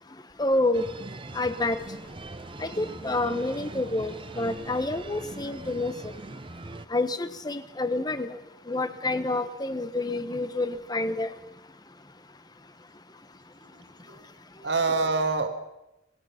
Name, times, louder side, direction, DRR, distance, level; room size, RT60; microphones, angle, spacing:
voice 1, 0.4-0.8 1.3-1.8 2.6-6.1 6.9-8.3 8.7-11.3, left 2 dB, 20° left, 11 dB, 1.1 m, -28 dB
sound 1, 0.7-6.9, right 2 dB, 25° right, 0.7 m, -41 dB
voice 2, 13.7-14.2 14.6-15.5, right 3 dB, 60° right, 5 dB, 1.9 m, -27 dB
25.5 x 19.5 x 5.8 m, 0.93 s
head